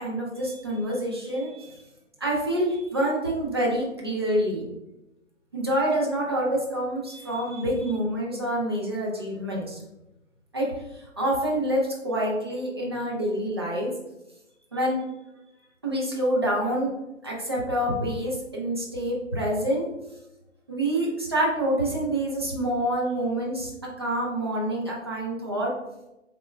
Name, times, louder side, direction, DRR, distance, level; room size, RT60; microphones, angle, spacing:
voice 1, 0.0-1.8 2.2-4.7 5.5-9.8 10.5-13.9 14.7-15.0 15.8-16.9 17.2-19.9 20.7-23.7 24.0-25.7, right 1 dB, 20° right, -4 dB, 0.5 m, -27 dB
5.3 x 3.6 x 2.2 m, 0.95 s
figure-of-eight pair, 140°, 39 cm